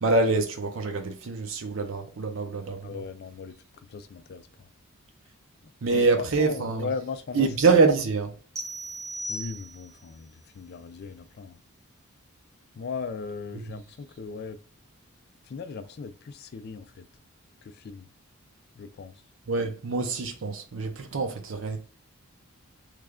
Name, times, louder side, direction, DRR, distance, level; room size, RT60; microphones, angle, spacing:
voice 1, 0.0-3.0 5.8-6.9 7.3-8.3 13.6-13.7 19.5-21.8, right 4 dB, 65° right, 0.6 m, -25 dB
voice 2, 2.8-3.6 3.9-4.7 5.8-6.1 6.4-7.5 9.3-11.6 12.8-14.6 15.5-17.1 17.6-18.1 18.8-19.1, left 5 dB, 45° left, 0.3 m, -38 dB
sound 1, 8.6-10.1, right 1 dB, 15° right, 0.6 m, -37 dB
3.2 x 2.4 x 3.5 m
head